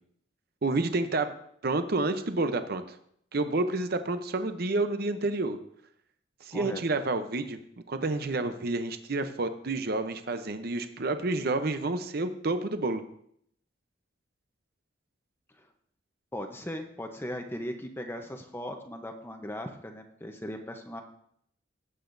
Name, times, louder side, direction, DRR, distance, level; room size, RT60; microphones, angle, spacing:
voice 1, 0.6-1.3 1.6-2.8 3.3-5.6 6.4-7.6 7.9-13.0, right 2 dB, 50° right, 9 dB, 0.7 m, -29 dB
voice 2, 6.5-6.8 15.6-15.7 16.3-21.0, equal, 10° left, 4 dB, 0.8 m, -38 dB
18.0 x 8.0 x 2.6 m, 0.68 s
head